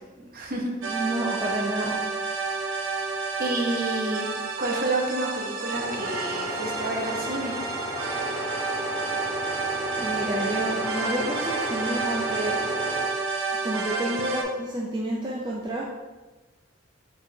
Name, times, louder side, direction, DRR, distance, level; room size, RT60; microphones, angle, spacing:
voice 1, 0.3-1.0 3.4-4.3 4.6-7.5, right 2 dB, 45° right, 0 dB, 0.8 m, -29 dB
sound 1, 0.8-14.4, right 4 dB, 85° right, 0.6 m, -30 dB
voice 2, 0.9-2.0 9.9-12.6 13.6-15.9, right 1 dB, 20° right, -4 dB, 0.4 m, -30 dB
sound 2, 5.7-13.1, equal, 40° left, 1.1 m, -34 dB
4.6 x 4.2 x 2.7 m, 1.2 s
head